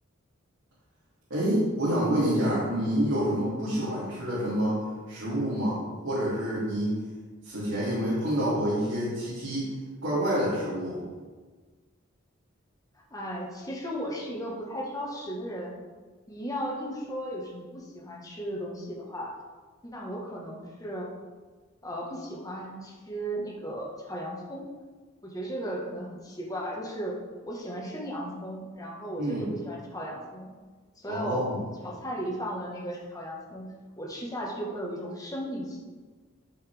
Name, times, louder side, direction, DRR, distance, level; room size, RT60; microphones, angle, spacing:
voice 1, 1.3-4.8 5.1-7.0 7.4-9.7 10.0-11.0 29.2-29.5 31.1-31.6, equal, 80° right, -10 dB, 2.7 m, -27 dB
voice 2, 13.1-15.8 16.3-19.4 19.8-21.1 21.8-24.7 25.2-27.2 27.4-30.5 31.0-31.5 31.8-35.8, equal, 20° left, -1 dB, 1.4 m, -36 dB
12.5 x 5.6 x 3.4 m, 1.4 s
head